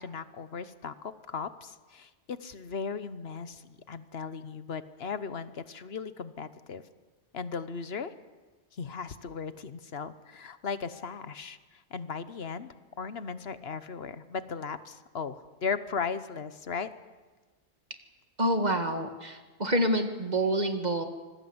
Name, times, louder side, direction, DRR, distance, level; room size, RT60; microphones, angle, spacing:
voice 1, 0.0-6.8 7.3-8.1 8.7-16.9, left 5 dB, 60° left, 13 dB, 1.2 m, -37 dB
voice 2, 18.4-21.0, right 1 dB, 40° right, 6 dB, 2.0 m, -27 dB
26.0 x 19.5 x 7.9 m, 1.3 s
omnidirectional pair, 1.2 m